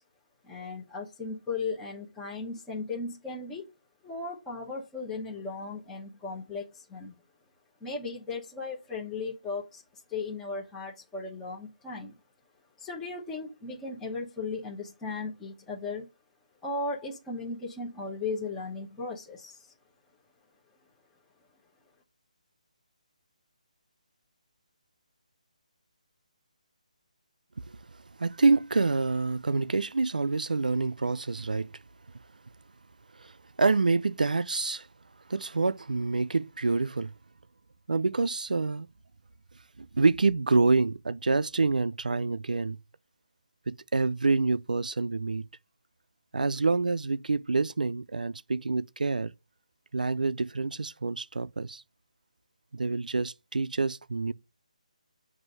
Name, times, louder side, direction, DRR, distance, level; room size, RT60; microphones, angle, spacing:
voice 1, 0.4-3.7 4.0-7.1 7.8-12.1 12.8-16.1 16.6-19.7, left 3 dB, 10° left, 1.0 m, -36 dB
voice 2, 28.2-31.7 33.2-33.3 33.6-34.9 35.3-37.1 37.9-38.9 39.8-42.8 43.7-45.4 46.3-49.3 49.9-51.8 52.7-54.3, right 3 dB, 85° right, 0.3 m, -27 dB
7.8 x 2.7 x 5.3 m
figure-of-eight pair, 155°, 4 cm